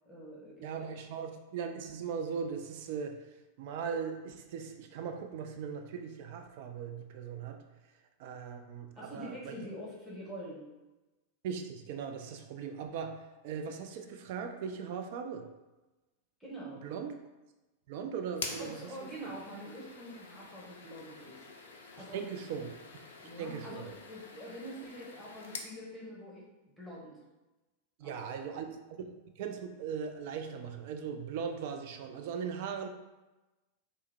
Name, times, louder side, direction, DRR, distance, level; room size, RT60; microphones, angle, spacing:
voice 1, 0.1-0.9 8.9-10.7 16.4-16.9 18.6-21.4 22.0-22.2 23.2-27.2 28.0-28.7, equal, ahead, -6 dB, 0.9 m, -45 dB
voice 2, 0.6-3.2 3.6-7.6 8.2-9.5 11.4-15.4 16.8-17.1 17.9-19.3 22.1-23.0 23.4-23.9 28.0-29.1 29.4-32.9, right 6 dB, 50° right, 5 dB, 0.3 m, -39 dB
sound 1, 18.3-25.7, left 4 dB, 65° left, 0.4 m, -47 dB
3.2 x 2.0 x 3.3 m, 1.1 s
figure-of-eight pair, 90°, 0 cm